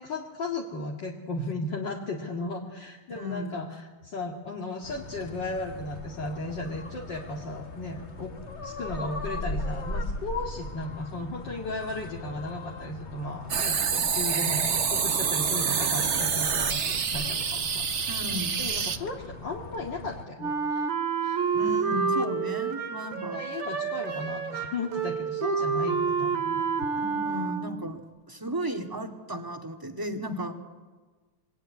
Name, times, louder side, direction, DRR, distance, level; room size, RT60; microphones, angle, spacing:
voice 1, 0.0-8.3 8.6-18.2 18.6-20.9 21.2-21.4 23.0-26.7, left 2 dB, 55° left, -1 dB, 2.8 m, -35 dB
voice 2, 3.1-3.6 18.1-18.6 21.5-23.4 27.0-28.0 28.3-30.5, equal, 10° right, 4 dB, 2.1 m, -34 dB
sound 1, 4.8-20.2, left 2 dB, 35° left, 2.0 m, -39 dB
sound 2, 13.5-19.0, right 6 dB, 45° right, 1.1 m, -27 dB
Wind instrument woodwind instrument, 20.4-28.0, right 5 dB, 65° right, 2.5 m, -29 dB
26.5 x 23.5 x 9.6 m, 1.3 s
omnidirectional pair, 2.4 m